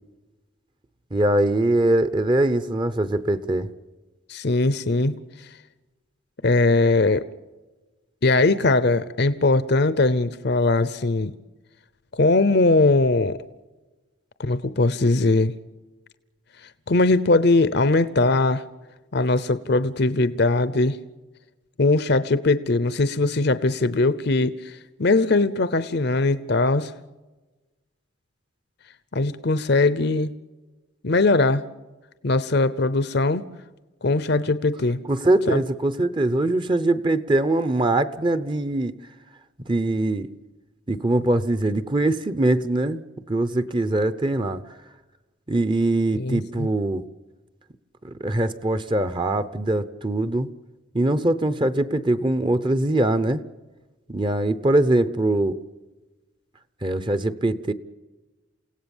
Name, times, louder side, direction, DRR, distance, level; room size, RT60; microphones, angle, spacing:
voice 1, 1.1-3.7 35.1-38.9 39.7-40.3 40.9-43.0 43.3-44.6 45.5-47.0 48.2-50.5 50.9-53.4 54.1-55.6 56.8-57.7, right 1 dB, 25° right, 13 dB, 0.8 m, -22 dB
voice 2, 4.3-5.2 6.4-7.2 8.2-11.3 12.1-13.4 14.4-15.5 16.9-18.6 19.1-21.0 21.8-26.9 29.1-30.3 31.0-31.6 32.2-33.4 34.0-35.0 35.5-35.6 46.1-46.7, left 2 dB, 55° left, 14 dB, 0.7 m, -20 dB
29.0 x 17.0 x 7.2 m, 1.2 s
head